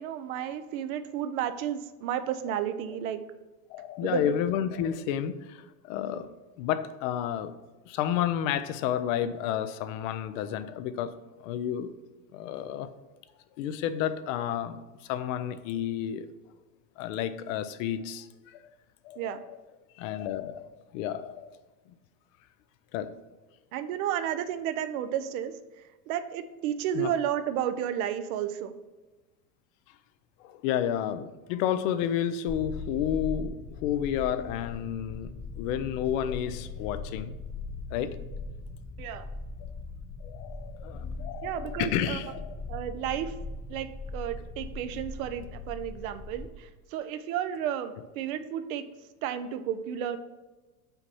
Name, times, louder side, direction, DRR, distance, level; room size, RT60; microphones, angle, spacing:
voice 1, 0.0-3.2 4.0-4.3 19.2-19.4 23.7-25.5 26.1-28.7 39.0-39.3 41.4-42.2 42.7-43.3 43.7-46.5 46.9-48.8 49.2-50.2, right 10 dB, 65° right, 0.7 m, -32 dB
voice 2, 3.7-6.3 6.6-7.5 7.9-12.0 12.3-12.9 13.6-16.3 17.0-18.6 19.0-19.6 20.0-21.6 22.9-23.1 26.9-27.1 30.4-37.3 37.9-38.2 39.6-39.7 40.2-42.5, left 10 dB, 60° left, 0.6 m, -31 dB
sound 1, 32.5-46.5, left 3 dB, 10° left, 0.4 m, -40 dB
5.8 x 4.1 x 5.5 m
hypercardioid pair, 95°, 45 cm